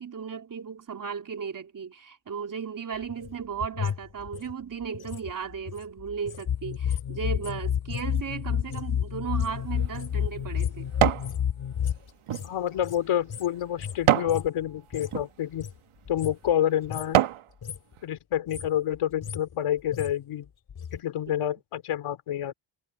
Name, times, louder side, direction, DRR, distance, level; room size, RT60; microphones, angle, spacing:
voice 1, 0.0-10.9 21.3-21.4, right 6 dB, 40° right, 3.4 m, -35 dB
sound 1, 2.9-6.5 6.7-15.2 15.5-16.6 16.8-17.2 17.5-18.0 18.3-21.0 21.3-21.4, left 7 dB, 45° left, 3.2 m, -40 dB
sound 2, 6.5-12.0, left 9 dB, 65° left, 6.2 m, -29 dB
sound 3, 9.5-11.3 11.8-14.4 15.0-15.3 15.9-16.1 16.6-17.5 18.0-18.1, right 12 dB, 80° right, 1.5 m, -27 dB
voice 2, 12.4-15.7 16.1-17.2 18.0-20.5 20.9-22.5, left 11 dB, 85° left, 3.3 m, -28 dB
cardioid pair, 135°, 49 cm